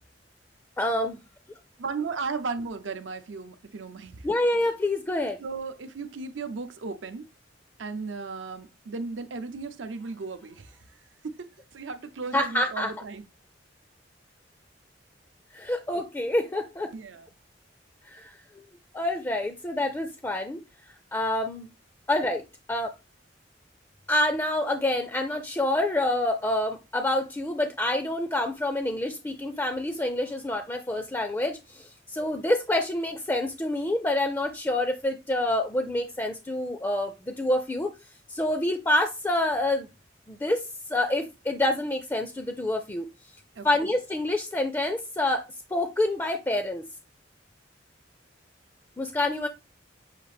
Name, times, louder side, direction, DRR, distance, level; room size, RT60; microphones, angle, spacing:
voice 1, 0.8-1.2 4.2-5.4 12.3-12.9 15.5-16.9 18.1-18.6 18.9-20.6 21.1-21.7 22.1-22.4 22.7-22.9 24.1-37.9 38.3-39.9 40.3-43.1 43.6-45.4 45.7-46.9 49.0-49.5, left 1 dB, 15° left, 0.4 m, -27 dB
voice 2, 1.8-4.3 5.4-7.3 7.8-13.2 16.9-17.3 43.6-43.7, right 4 dB, 80° right, 0.6 m, -36 dB
6.5 x 2.5 x 3.2 m
head